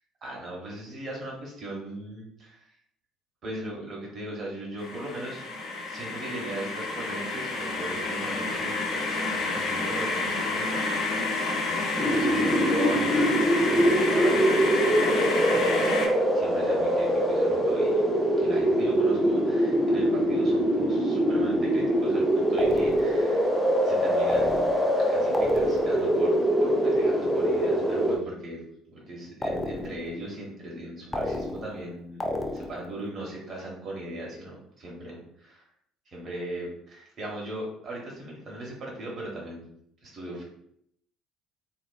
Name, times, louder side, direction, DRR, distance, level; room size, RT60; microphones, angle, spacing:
voice 1, 0.2-2.6 3.4-5.4 5.9-10.7 11.4-13.3 13.7-18.0 18.4-23.5 23.8-24.7 25.1-28.6 28.9-35.6 36.1-39.7 40.0-40.4, right 1 dB, 45° right, -3 dB, 1.0 m, -38 dB
sound 1, 4.8-16.1, left 3 dB, 50° left, 0.7 m, -29 dB
sound 2, 12.0-28.2, equal, 5° right, 0.8 m, -23 dB
sound 3, 22.6-23.3 24.3-25.0 25.3-26.1 29.4-30.1 31.1-31.9 32.2-32.9, left 2 dB, 15° left, 0.3 m, -32 dB
2.4 x 2.2 x 2.3 m, 0.70 s
figure-of-eight pair, 55°, 0 cm